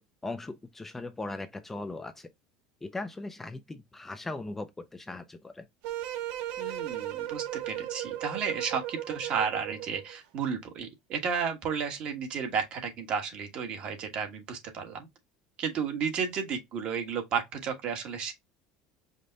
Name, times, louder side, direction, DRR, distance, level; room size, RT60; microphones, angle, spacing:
voice 1, 0.0-2.3 2.8-5.7, left 2 dB, 10° left, 0.4 m, -39 dB
sound 1, 5.8-10.2, right 13 dB, 70° right, 0.8 m, -36 dB
voice 2, 6.6-15.1 15.6-18.3, right 6 dB, 45° right, 1.4 m, -33 dB
5.1 x 2.2 x 3.9 m
supercardioid pair, 130°, 3 cm